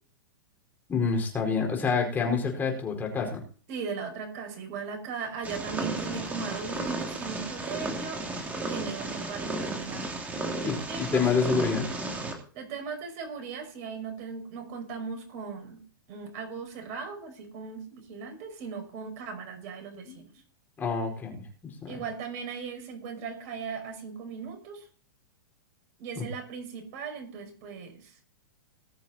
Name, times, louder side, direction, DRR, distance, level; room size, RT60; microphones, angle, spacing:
voice 1, 0.9-3.4 10.6-11.9 20.1-20.2 20.8-21.4 21.8-22.0 26.1-26.2, left 5 dB, 15° left, 1 dB, 4.8 m, -27 dB
voice 2, 3.7-8.2 8.7-10.0 10.5-11.2 12.5-15.8 16.1-20.3 21.9-24.8 26.0-28.1, right 5 dB, 45° right, 4 dB, 5.5 m, -38 dB
Purr, 5.4-12.3, right 2 dB, 15° right, 3.0 m, -34 dB
20.0 x 7.1 x 4.4 m, 0.42 s
hypercardioid pair, 135°, 11 cm